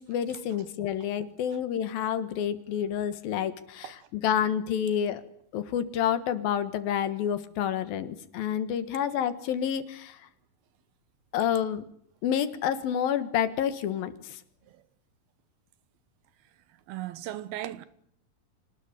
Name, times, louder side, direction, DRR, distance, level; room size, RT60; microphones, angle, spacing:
voice 1, 0.0-5.2 5.5-10.2 11.3-11.8 12.2-14.4, left 9 dB, 75° left, 3.2 m, -29 dB
voice 2, 16.9-17.8, right 13 dB, 80° right, 3.1 m, -37 dB
25.0 x 19.5 x 9.8 m
omnidirectional pair, 4.3 m